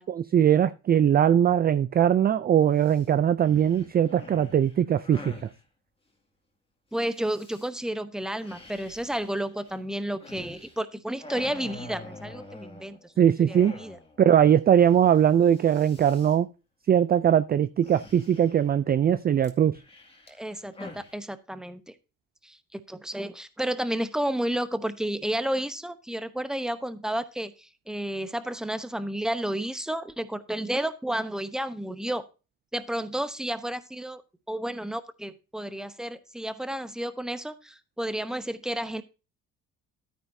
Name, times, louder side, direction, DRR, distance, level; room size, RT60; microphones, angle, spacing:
voice 1, 0.1-5.3 13.2-13.7 14.2-16.5 16.9-19.8, right 9 dB, 30° right, 0.4 m, -21 dB
sound 1, 2.8-3.1 3.4-5.6 7.1-7.7 8.4-10.8 11.1-13.1 13.5-14.2 14.5-14.6 14.9-15.2 15.4-16.4 17.8-18.7 19.4-21.1, left 2 dB, 15° left, 2.2 m, -46 dB
voice 2, 6.9-14.0 20.3-21.9 22.4-32.2 32.7-34.2 34.5-39.0, right 1 dB, ahead, 0.9 m, -31 dB
12.5 x 9.4 x 2.7 m
cardioid pair, 120°, 33 cm